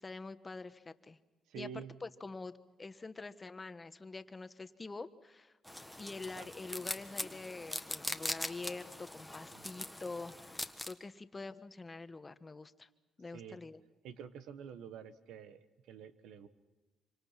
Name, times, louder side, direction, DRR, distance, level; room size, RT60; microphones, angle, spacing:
voice 1, 0.0-1.2 1.5-2.5 2.8-5.5 6.0-12.9 13.2-13.8, left 3 dB, 25° left, 11 dB, 1.2 m, -46 dB
voice 2, 1.5-2.0 6.3-6.5 9.5-9.6 13.3-13.6 14.0-16.5, right 7 dB, 85° right, 11 dB, 1.4 m, -48 dB
sound 1, 5.7-10.9, left 1 dB, 5° left, 1.5 m, -42 dB
27.0 x 25.0 x 5.9 m, 1.2 s
cardioid pair, 90°, 0 cm